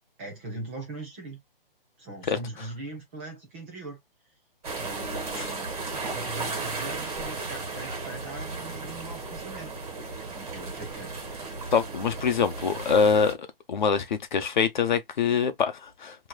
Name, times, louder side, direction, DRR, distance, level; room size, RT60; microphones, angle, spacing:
voice 1, 0.2-1.4 2.0-4.0 4.8-9.8 10.4-11.3, right 2 dB, 15° right, 0.8 m, -41 dB
sound 1, 4.6-13.3, right 3 dB, 40° right, 2.0 m, -35 dB
voice 2, 11.7-16.2, left 6 dB, 55° left, 0.9 m, -24 dB
4.7 x 3.0 x 2.3 m
hypercardioid pair, 170°, 29 cm